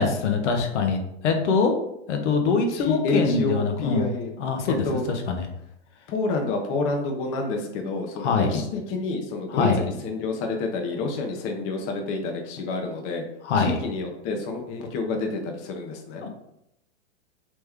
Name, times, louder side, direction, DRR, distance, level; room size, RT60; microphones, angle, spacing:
voice 1, 0.0-1.7 2.1-4.1 4.4-5.5 8.2-8.5 9.5-9.8 13.4-13.8 16.2-16.3, left 5 dB, 70° left, 3 dB, 0.8 m, -23 dB
voice 2, 2.7-4.3 4.7-5.1 6.1-13.2 13.6-16.2, left 3 dB, 40° left, 3 dB, 0.7 m, -28 dB
3.4 x 3.0 x 3.5 m, 0.78 s
hypercardioid pair, 115°, 36 cm